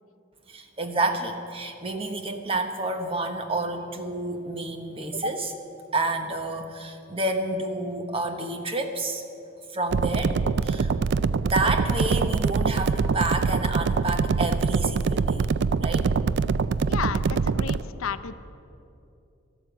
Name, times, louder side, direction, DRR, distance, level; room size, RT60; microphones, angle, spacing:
voice 1, 0.5-5.5 5.9-9.3 9.7-10.4 10.6-10.9 11.4-15.5 15.8-16.1, right 2 dB, 25° right, 6 dB, 1.0 m, -29 dB
sound 1, 9.9-17.8, right 5 dB, 55° right, 0.3 m, -24 dB
voice 2, 16.9-18.3, left 7 dB, 80° left, 11 dB, 0.6 m, -32 dB
12.5 x 12.0 x 7.9 m, 2.7 s
head